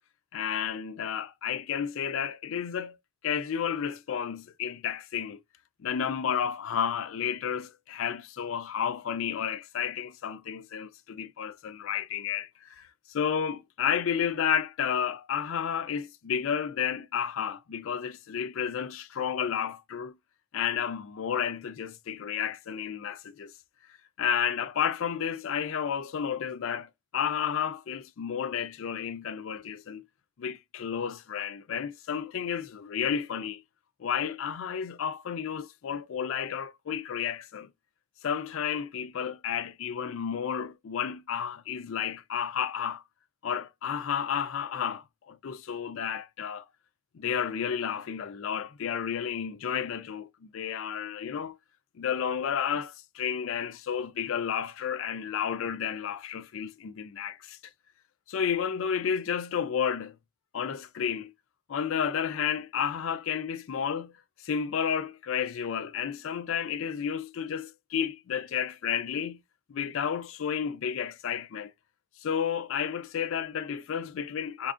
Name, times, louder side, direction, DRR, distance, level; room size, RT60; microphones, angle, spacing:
voice 1, 0.3-3.0 3.2-5.4 5.8-20.2 20.5-23.5 24.2-30.0 30.4-33.6 34.0-37.7 38.2-43.0 43.4-46.7 47.1-51.6 52.0-57.6 58.3-60.2 60.5-61.3 61.7-69.4 69.7-71.7 72.2-74.7, left 8 dB, 65° left, 0.4 m, -31 dB
4.3 x 2.5 x 2.4 m
head